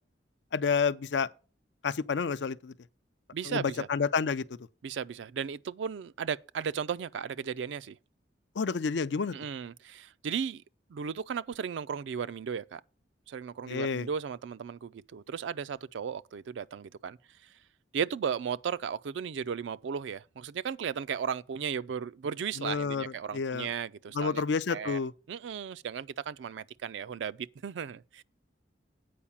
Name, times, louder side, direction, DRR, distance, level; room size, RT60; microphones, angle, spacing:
voice 1, 0.5-1.3 1.8-2.7 3.4-4.4 8.6-9.3 13.7-14.1 22.6-23.0 23.3-23.7 24.1-25.1, left 5 dB, 70° left, 0.5 m, -29 dB
voice 2, 3.3-3.9 4.8-8.0 9.3-10.6 10.9-12.8 13.3-17.5 17.9-24.4 24.7-25.0 25.3-28.2, right 7 dB, 75° right, 0.4 m, -35 dB
8.6 x 4.7 x 7.1 m
head